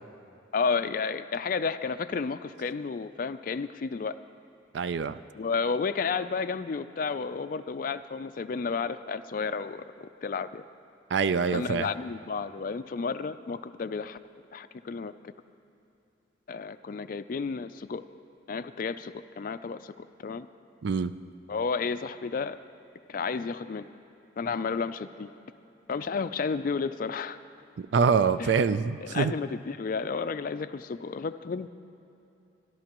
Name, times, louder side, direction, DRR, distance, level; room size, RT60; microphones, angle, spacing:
voice 1, 0.5-4.2 5.4-10.6 11.5-14.2 14.5-15.3 16.5-18.0 18.5-20.5 21.5-22.6 23.1-23.9 24.4-25.3 25.9-27.4 28.4-28.5 29.0-31.7, left 5 dB, 45° left, 10 dB, 0.4 m, -32 dB
voice 2, 4.7-5.2 11.1-11.9 20.8-21.1 27.8-29.3, right 5 dB, 65° right, 14 dB, 0.4 m, -25 dB
24.5 x 11.5 x 3.0 m, 2.8 s
head